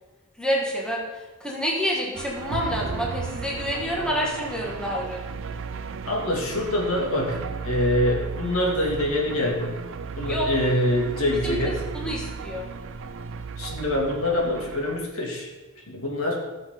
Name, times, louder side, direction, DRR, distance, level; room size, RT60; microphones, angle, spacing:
voice 1, 0.4-1.1 1.4-5.2 10.3-10.5 11.4-12.7, equal, 5° left, -4 dB, 1.8 m, -28 dB
sound 1, 2.1-15.0, right 4 dB, 60° right, 0.5 m, -34 dB
voice 2, 6.0-9.8 10.2-11.8 13.6-15.5 15.9-16.5, left 1 dB, 70° left, -2 dB, 2.5 m, -25 dB
18.0 x 6.9 x 3.9 m, 1.2 s
head